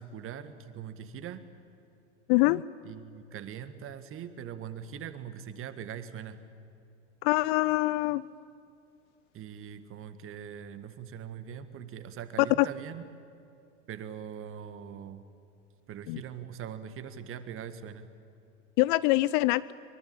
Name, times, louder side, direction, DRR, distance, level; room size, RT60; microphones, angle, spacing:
voice 1, 0.0-1.4 2.9-6.4 9.3-13.0 13.9-15.2 15.9-18.1, right 8 dB, 35° right, 11 dB, 1.8 m, -42 dB
voice 2, 2.3-2.6 7.2-8.2 12.4-12.7 16.1-16.2 18.8-19.7, left 20 dB, 45° left, 19 dB, 0.5 m, -24 dB
23.0 x 23.0 x 8.8 m, 2.6 s
figure-of-eight pair, 85°, 37 cm